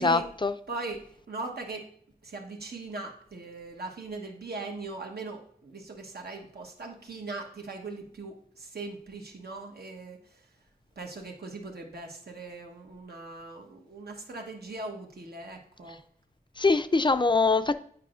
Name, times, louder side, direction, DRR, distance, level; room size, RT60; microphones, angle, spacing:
voice 1, 0.0-0.5 16.6-17.7, left 3 dB, 30° left, 0.4 m, -23 dB
voice 2, 0.7-1.9 2.2-10.5 11.0-16.0, right 3 dB, 85° right, 1.1 m, -40 dB
9.2 x 4.8 x 2.5 m
wide cardioid pair, 75°, 16 cm